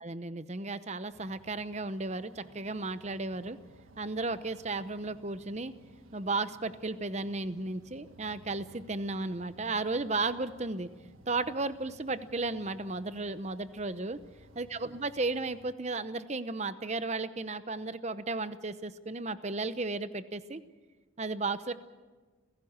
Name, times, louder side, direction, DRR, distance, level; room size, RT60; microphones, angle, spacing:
voice 1, 0.0-3.6 4.0-5.7 6.1-10.9 11.3-14.2 14.5-20.6 21.2-21.7, right 3 dB, 35° right, 13 dB, 0.8 m, -34 dB
sound 1, 1.1-15.7, right 2 dB, 80° right, 1.6 m, -57 dB
29.5 x 16.5 x 7.3 m, 1.3 s
head